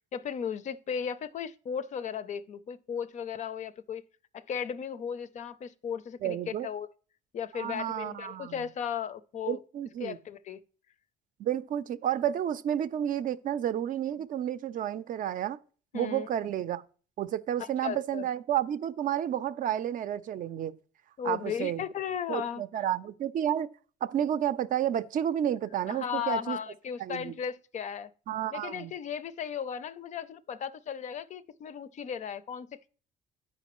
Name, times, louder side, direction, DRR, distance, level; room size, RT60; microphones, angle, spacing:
voice 1, 0.1-4.0 4.3-6.9 7.3-9.6 10.0-10.6 15.9-16.3 17.6-18.3 21.2-22.8 25.9-28.1 28.5-32.9, left 8 dB, 45° left, 0.5 m, -36 dB
voice 2, 6.2-6.7 7.5-8.7 9.5-10.2 11.4-15.6 15.9-16.8 17.2-20.7 21.2-21.8 22.3-23.7 24.0-26.6 27.0-27.3 28.3-28.9, right 10 dB, 55° right, 0.5 m, -31 dB
12.5 x 4.9 x 3.0 m
cardioid pair, 110°, 17 cm